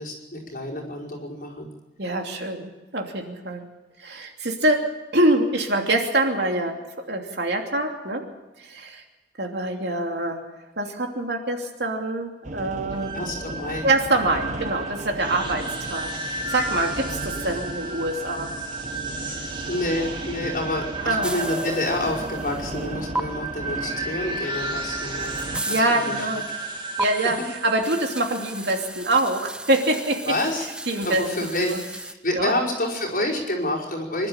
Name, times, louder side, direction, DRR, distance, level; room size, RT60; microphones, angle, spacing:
voice 1, 0.0-1.7 13.1-13.9 19.2-19.4 19.7-25.4 25.7-26.3 30.3-30.7 31.0-34.3, left 1 dB, 50° left, -3 dB, 5.2 m, -28 dB
voice 2, 2.0-3.6 4.0-4.8 5.1-6.8 7.1-8.2 8.6-9.0 9.4-10.5 10.8-13.2 13.8-18.5 21.0-21.3 25.7-26.4 27.0-30.3 30.9-31.8 32.4-32.5, right 1 dB, 75° right, 3 dB, 2.8 m, -25 dB
sound 1, 12.4-25.6, right 1 dB, 45° right, 1.2 m, -36 dB
sound 2, 12.9-28.9, right 2 dB, 25° right, 2.0 m, -33 dB
sound 3, 21.2-22.9 23.1-23.2 24.6-24.7 25.0-25.9 27.0-27.1 27.8-32.1, right 2 dB, 5° right, 0.7 m, -34 dB
25.0 x 12.0 x 9.0 m, 1.1 s
head